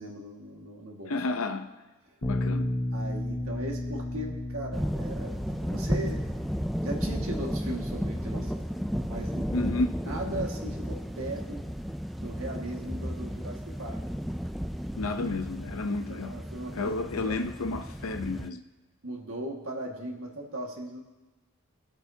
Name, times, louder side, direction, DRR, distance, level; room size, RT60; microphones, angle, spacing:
voice 1, 0.0-1.2 2.9-8.6 9.0-9.5 10.1-11.7 12.2-14.0 16.1-17.4 19.0-21.0, right 1 dB, 75° right, 0 dB, 1.8 m, -38 dB
voice 2, 1.1-1.7 2.2-2.7 9.5-10.0 15.0-16.4 16.7-18.6, left 3 dB, 75° left, 8 dB, 0.7 m, -31 dB
Bass guitar, 2.2-8.5, left 1 dB, 15° left, 0.9 m, -34 dB
sound 1, 4.7-18.5, equal, ahead, 0.3 m, -33 dB
20.5 x 8.3 x 2.8 m, 1.2 s
head